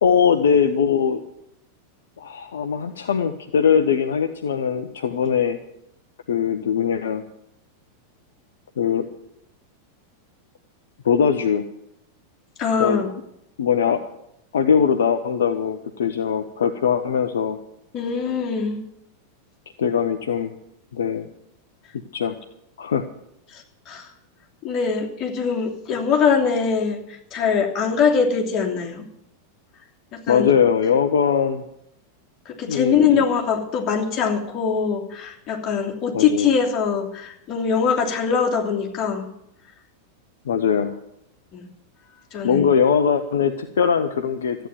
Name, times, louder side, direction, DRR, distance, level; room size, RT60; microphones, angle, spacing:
voice 1, 0.0-1.2 2.2-5.6 6.3-7.3 8.8-9.1 11.0-11.7 12.8-13.0 13.6-14.0 14.5-17.6 19.8-20.5 20.9-21.3 22.1-22.4 22.8-23.1 30.3-31.6 32.7-33.2 36.1-36.5 40.4-41.0 42.4-44.7, left 7 dB, 65° left, 8 dB, 0.9 m, -21 dB
voice 2, 12.6-13.1 17.9-18.8 23.5-24.1 24.6-27.0 27.3-29.0 30.1-30.5 32.5-39.3 41.5-41.7 42.3-42.7, left 6 dB, 35° left, 0 dB, 2.9 m, -22 dB
14.0 x 9.0 x 9.4 m, 0.78 s
figure-of-eight pair, 90°, 0 cm